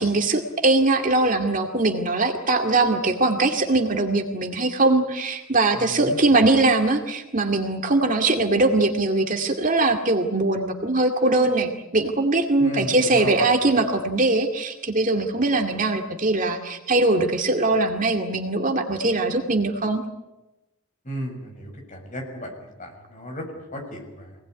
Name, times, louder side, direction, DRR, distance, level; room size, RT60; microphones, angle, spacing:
voice 1, 0.0-20.0, right 2 dB, 35° right, 4 dB, 2.2 m, -21 dB
voice 2, 5.9-6.2 12.6-13.4 21.0-24.4, equal, 35° left, 2 dB, 6.8 m, -35 dB
25.5 x 19.5 x 9.7 m, 0.99 s
head